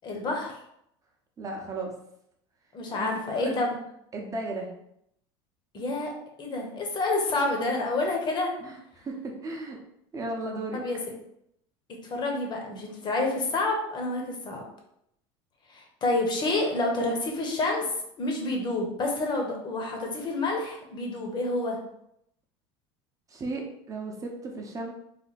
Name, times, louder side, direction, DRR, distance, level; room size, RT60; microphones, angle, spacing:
voice 1, 0.0-0.5 2.7-3.8 5.7-6.1 6.4-8.5 10.7-11.0 12.0-14.6 15.7-17.9 18.2-21.8, left 2 dB, 35° left, 1 dB, 1.0 m, -28 dB
voice 2, 1.4-1.9 2.9-3.6 4.1-4.7 8.6-9.8 10.1-10.8 23.3-24.9, right 2 dB, 25° right, 1 dB, 0.8 m, -35 dB
3.4 x 2.2 x 4.0 m, 0.75 s
supercardioid pair, 110°, 13 cm